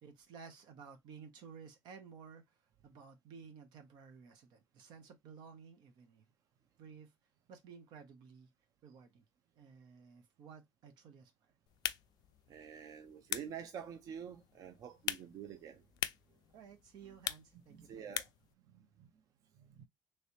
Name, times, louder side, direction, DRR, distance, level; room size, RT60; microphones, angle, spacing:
voice 1, 0.0-6.3 6.8-7.1 7.5-8.5 8.8-9.2 9.5-11.5 16.5-18.1, right 6 dB, 85° right, 1.0 m, -55 dB
sound 1, 11.7-18.5, left 13 dB, 70° left, 0.3 m, -44 dB
voice 2, 12.5-15.9 17.5-18.3 18.6-19.2 19.5-19.9, right 8 dB, 55° right, 0.5 m, -48 dB
3.2 x 3.2 x 2.7 m
cardioid pair, 175°, 7 cm